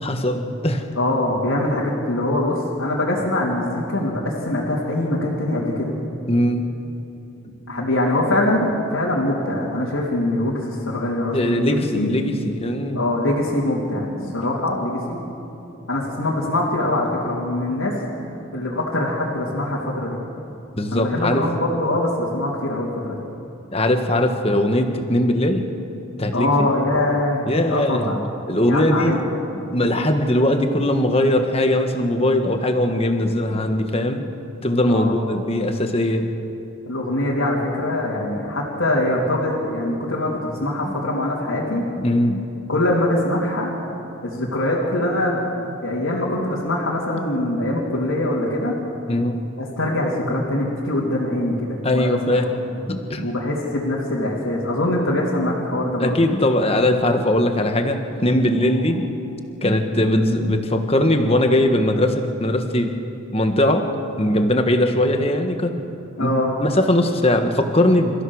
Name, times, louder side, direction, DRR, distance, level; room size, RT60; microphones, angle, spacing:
voice 1, 0.0-0.8 6.3-6.6 11.3-13.0 14.2-14.4 20.8-21.4 23.7-25.6 26.2-26.7 27.5-28.2 28.5-29.2 29.5-34.2 34.6-36.3 40.8-41.0 41.7-42.4 49.1-49.4 51.8-52.5 52.9-53.3 56.0-59.1 59.6-62.9 63.3-63.9 64.2-65.7 66.2-66.3 66.6-68.2, left 1 dB, 30° left, 5 dB, 1.5 m, -20 dB
voice 2, 1.0-5.9 7.7-12.2 12.9-15.2 15.9-17.9 18.5-20.2 20.9-23.2 26.3-28.2 28.6-29.1 34.9-35.2 36.9-41.8 42.7-43.7 44.2-45.4 45.8-48.7 49.6-52.4 53.2-56.1 58.6-58.7 66.2-66.5, left 1 dB, 80° left, -6 dB, 3.4 m, -23 dB
28.5 x 15.0 x 6.4 m, 2.8 s
head